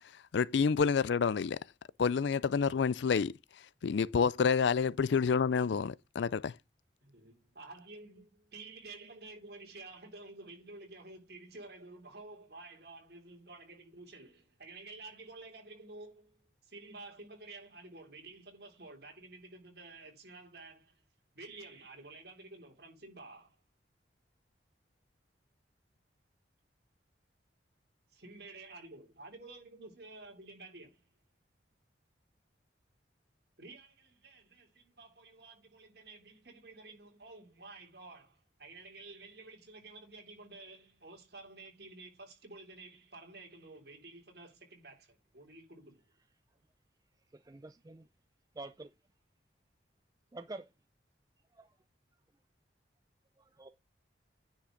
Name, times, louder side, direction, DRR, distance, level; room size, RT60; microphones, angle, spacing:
voice 1, 0.3-1.6 2.0-3.3 3.8-6.5, left 6 dB, 70° left, 0.4 m, -28 dB
voice 2, 7.0-16.4 16.6-21.0 21.3-23.6 28.1-31.1 33.6-46.0, right 3 dB, 55° right, 3.2 m, -51 dB
voice 3, 47.3-48.1 48.5-48.9 50.3-50.7 51.5-51.8 53.5-53.7, right 2 dB, 20° right, 0.4 m, -47 dB
9.8 x 5.8 x 3.8 m
head